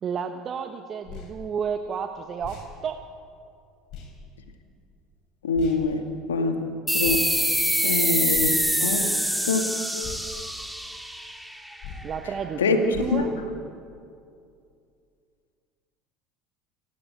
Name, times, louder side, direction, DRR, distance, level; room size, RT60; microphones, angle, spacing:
voice 1, 0.0-3.0 12.0-13.3, right 7 dB, 40° right, 7 dB, 1.1 m, -31 dB
sound 1, 1.0-1.3 2.4-2.7 3.9-4.1 5.5-5.8 7.0-7.3 8.3-8.7 10.0-10.2 11.8-12.1 12.9-13.2, left 6 dB, 55° left, 6.7 m, -39 dB
voice 2, 5.4-6.0 6.3-6.6 6.9-7.3 7.8-9.1 9.4-9.7 12.6-12.8 13.1-13.2, left 4 dB, 85° left, 5 dB, 2.1 m, -24 dB
sound 2, 6.9-12.0, equal, ahead, 2.2 m, -25 dB
29.5 x 12.5 x 8.8 m, 2.5 s
hypercardioid pair, 70°, 0 cm